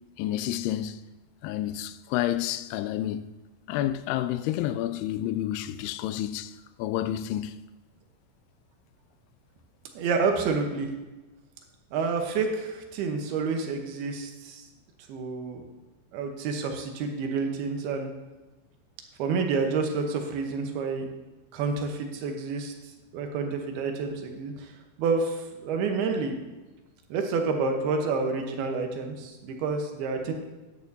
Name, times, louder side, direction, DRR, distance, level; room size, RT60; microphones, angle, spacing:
voice 1, 0.2-1.0 1.4-3.3 3.7-6.5 6.8-7.6, left 12 dB, 85° left, 2.5 m, -29 dB
voice 2, 9.9-10.9 11.9-14.6 15.1-15.6 16.1-18.1 19.2-21.1 21.5-22.7 23.1-24.5 25.0-26.4 27.1-30.3, right 4 dB, 80° right, 3.0 m, -29 dB
13.0 x 10.0 x 2.8 m
omnidirectional pair, 4.5 m